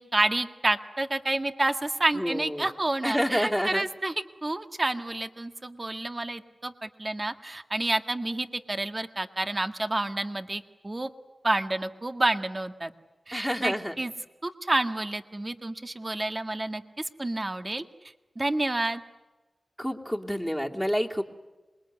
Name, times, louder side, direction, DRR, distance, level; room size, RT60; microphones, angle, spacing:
voice 1, 0.0-4.1 4.4-11.1 11.4-12.9 13.3-14.1 14.4-17.8 18.4-19.0, right 2 dB, 35° right, 8 dB, 1.8 m, -29 dB
voice 2, 2.1-2.7 3.0-3.9 13.3-13.9 19.8-21.2, equal, 5° right, 1 dB, 2.9 m, -28 dB
27.0 x 21.5 x 9.4 m, 1.2 s
cardioid pair, 45°, 0 cm